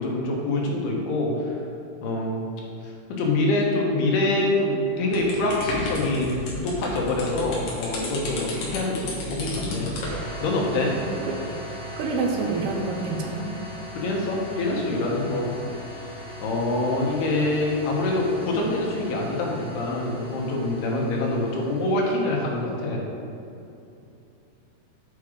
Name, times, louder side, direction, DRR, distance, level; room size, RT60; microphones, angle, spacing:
voice 1, 0.0-1.5 2.0-2.4 3.1-9.9 10.4-10.9 13.9-15.5 16.4-23.0, left 2 dB, 90° left, -2 dB, 3.2 m, -25 dB
sound 1, 5.1-10.2, left 1 dB, 65° left, 2.8 m, -33 dB
sound 2, 10.0-22.6, equal, 65° right, 3.2 m, -39 dB
voice 2, 11.0-11.4 12.0-13.5, right 4 dB, 85° right, 2 dB, 2.7 m, -27 dB
8.1 x 4.9 x 4.9 m, 2.8 s
omnidirectional pair, 4.4 m